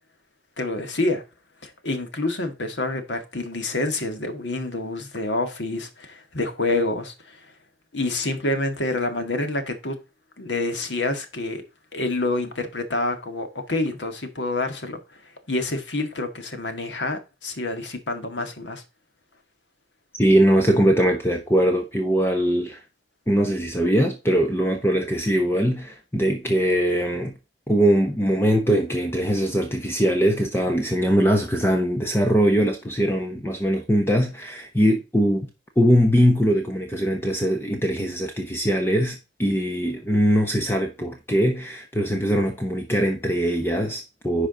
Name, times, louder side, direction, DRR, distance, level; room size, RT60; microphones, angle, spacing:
voice 1, 0.6-1.2 1.6-7.5 7.9-10.0 10.4-11.6 11.9-18.8, left 2 dB, 85° left, 1.8 m, -27 dB
voice 2, 20.2-22.8 23.3-27.4 27.7-35.5 35.8-44.5, equal, 15° left, 1.0 m, -21 dB
10.5 x 5.0 x 3.9 m
head